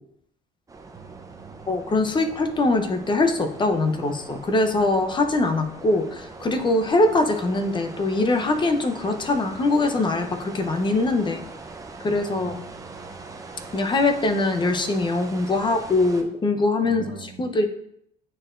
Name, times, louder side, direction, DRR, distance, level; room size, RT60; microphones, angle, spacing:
sound 1, 0.7-16.2, right 3 dB, 20° right, 0.7 m, -41 dB
voice 1, 1.0-1.7 12.3-13.4 16.8-17.4, right 9 dB, 60° right, 11 dB, 0.5 m, -44 dB
voice 2, 1.7-11.4 12.0-12.6 13.7-17.7, left 2 dB, 25° left, 7 dB, 0.7 m, -22 dB
8.5 x 4.4 x 2.5 m, 0.71 s
cardioid pair, 110°, 17 cm